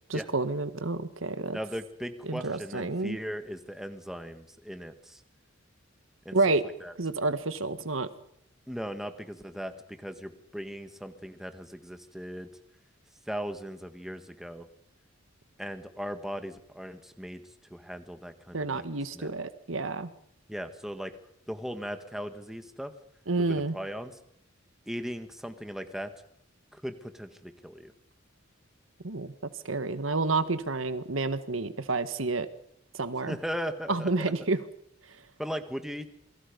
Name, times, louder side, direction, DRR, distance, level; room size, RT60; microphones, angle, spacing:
voice 1, 0.1-1.6 2.2-3.2 6.3-6.6 7.0-8.1 18.5-20.1 23.3-23.8 29.0-29.3 29.6-32.5 32.9-33.4 33.9-34.6, right 3 dB, 90° right, 11 dB, 1.6 m, -29 dB
voice 2, 1.5-5.2 6.2-6.4 6.8-6.9 8.7-12.5 13.3-14.7 15.6-17.4 17.7-18.9 19.1-19.3 20.5-21.2 21.5-22.9 23.4-24.1 24.9-26.1 26.7-27.9 33.2-34.3 35.4-36.1, equal, ahead, 7 dB, 1.7 m, -38 dB
28.0 x 22.5 x 5.4 m, 0.70 s
head